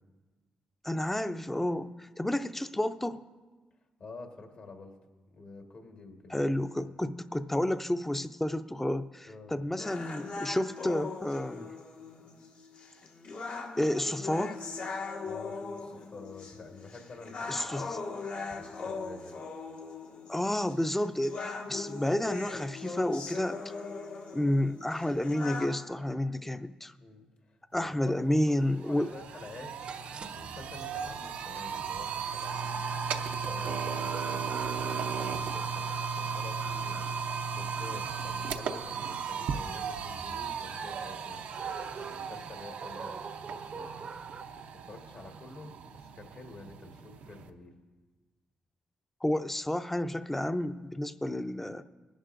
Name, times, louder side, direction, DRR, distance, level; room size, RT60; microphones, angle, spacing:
voice 1, 0.8-3.2 6.3-11.7 13.8-14.6 17.5-17.8 20.3-23.6 24.3-26.9 27.7-29.1 49.2-51.8, left 1 dB, 10° left, 11 dB, 0.5 m, -30 dB
voice 2, 4.0-4.9 5.3-6.6 9.3-9.8 15.2-18.2 18.5-19.4 27.0-30.0 30.3-43.2 43.5-44.1 44.8-47.7, left 3 dB, 60° left, 3 dB, 1.5 m, -49 dB
sound 1, 9.8-25.8, left 4 dB, 75° left, 1.5 m, -40 dB
sound 2, 28.1-28.2 28.5-47.5, right 6 dB, 90° right, 0.6 m, -36 dB
sound 3, 29.8-44.4, right 5 dB, 45° right, 0.6 m, -46 dB
20.0 x 11.0 x 2.6 m, 1.3 s
cardioid pair, 85°, 2 cm